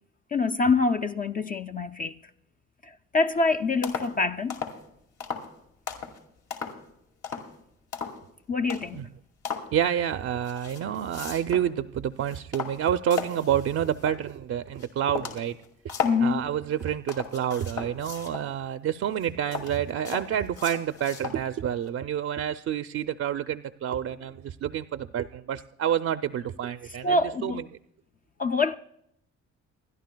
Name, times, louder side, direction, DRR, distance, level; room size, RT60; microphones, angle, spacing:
voice 1, 0.3-2.2 2.8-4.6 8.5-9.1 16.0-16.5 27.0-27.7 28.4-28.8, left 3 dB, 30° left, 0.4 m, -25 dB
sound 1, 3.3-3.5 3.8-4.1 4.5-4.8 5.2-5.5 5.9-6.2 6.5-6.9 7.2-7.5 7.9-8.2 8.7-9.0 9.4-9.7 10.4-11.7 12.1-14.3 14.8-14.9 15.1-16.2 16.7-18.5 19.1-21.4 21.9-22.0, left 6 dB, 75° left, 2.2 m, -36 dB
voice 2, 9.7-15.6 15.8-15.9 16.2-27.6, right 9 dB, 55° right, 0.5 m, -28 dB
28.5 x 11.0 x 2.2 m
cardioid pair, 90°, 30 cm